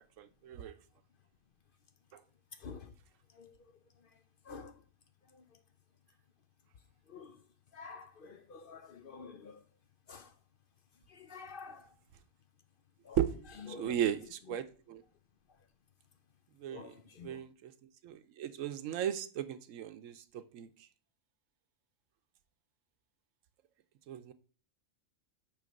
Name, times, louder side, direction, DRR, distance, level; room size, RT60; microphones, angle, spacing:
voice 1, 0.2-0.7 2.1-2.2 13.2-13.3 13.7-15.0 16.6-16.9 17.2-17.7 18.0-20.7 24.1-24.3, right 10 dB, 90° right, 1.0 m, -36 dB
voice 2, 2.6-2.9 3.3-3.5 4.5-4.7 5.3-5.4 7.1-7.4 7.7-9.6 10.1-10.3 11.1-11.9 13.0-13.2 13.7-13.9 16.7-17.4, left 5 dB, 55° left, 0.7 m, -49 dB
9.2 x 3.3 x 5.2 m
omnidirectional pair, 1.3 m